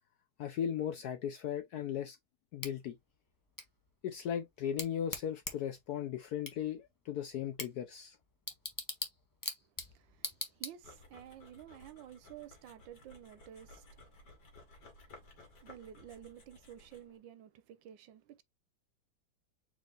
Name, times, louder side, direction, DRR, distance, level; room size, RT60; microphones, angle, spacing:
voice 1, 0.4-2.2 2.5-3.0 4.0-8.2, left 9 dB, 75° left, 0.9 m, -37 dB
Bicycle / Tick, 2.6-11.2, left 1 dB, 20° left, 0.6 m, -45 dB
voice 2, 9.6-14.9 15.2-18.4, right 10 dB, 75° right, 1.3 m, -53 dB
sound 1, 10.8-17.2, left 2 dB, 55° left, 2.2 m, -58 dB
4.6 x 2.9 x 3.8 m
omnidirectional pair, 2.2 m